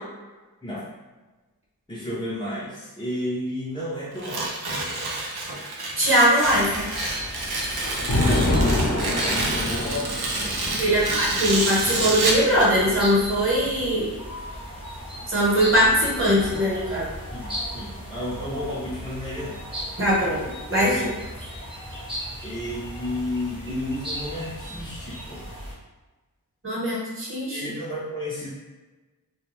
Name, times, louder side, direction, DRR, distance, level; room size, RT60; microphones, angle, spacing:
voice 1, 1.9-4.7 8.1-11.1 17.3-19.7 20.8-21.2 22.4-25.4 27.5-28.5, left 1 dB, 15° left, -9 dB, 0.6 m, -32 dB
Tearing, 4.2-12.5, right 2 dB, 90° right, 0.5 m, -28 dB
voice 2, 6.0-6.9 10.7-14.1 15.3-17.1 20.0-21.0 26.6-27.6, equal, 35° right, -6 dB, 1.1 m, -21 dB
sound 1, 6.4-25.7, equal, 15° right, 0.8 m, -37 dB
Thunder, 6.9-14.1 15.1-16.9, left 1 dB, 55° left, 0.8 m, -28 dB
2.2 x 2.2 x 3.1 m, 1.2 s
wide cardioid pair, 45°, 37 cm